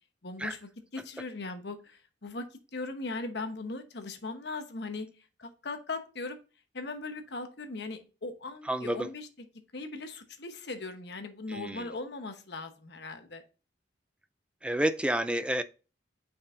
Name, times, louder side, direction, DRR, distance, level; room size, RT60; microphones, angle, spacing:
voice 1, 0.2-5.1 5.4-6.4 6.7-9.5 9.7-13.4, left 3 dB, 60° left, 1.0 m, -39 dB
voice 2, 8.7-9.1 11.5-11.9 14.6-15.6, right 1 dB, 5° right, 0.4 m, -29 dB
6.9 x 5.3 x 2.5 m
head